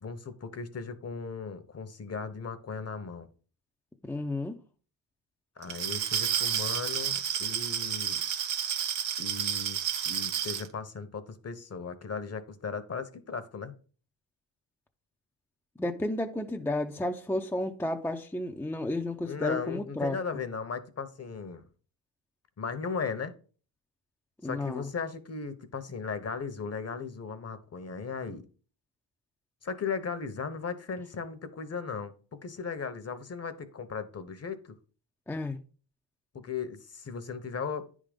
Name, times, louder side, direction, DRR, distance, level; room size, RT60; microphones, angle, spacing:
voice 1, 0.0-3.3 5.6-8.2 9.2-13.8 19.2-21.6 22.6-23.3 24.4-28.4 29.6-34.7 36.3-37.9, left 5 dB, 35° left, 1.0 m, -37 dB
voice 2, 4.0-4.6 15.8-20.2 24.4-24.9 35.3-35.6, left 1 dB, 5° left, 0.6 m, -32 dB
Glass, 5.6-10.7, right 9 dB, 75° right, 1.0 m, -31 dB
9.6 x 3.8 x 5.2 m
cardioid pair, 80°, 43 cm